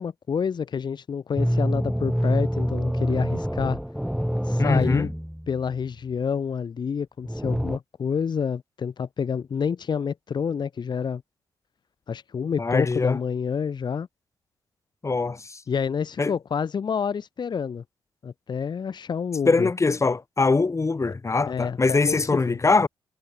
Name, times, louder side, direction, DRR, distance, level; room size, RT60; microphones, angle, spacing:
voice 1, 0.0-3.8 4.4-5.1 5.5-11.2 12.1-14.1 15.7-17.8 18.2-19.7 21.5-22.6, left 6 dB, 50° left, 1.3 m, -28 dB
sound 1, 1.4-5.6 7.3-7.8, equal, ahead, 1.0 m, -26 dB
voice 2, 4.6-5.1 12.6-13.2 15.0-15.6 16.2-16.3 19.5-22.9, left 3 dB, 30° left, 2.1 m, -22 dB
supercardioid pair, 55°, 9 cm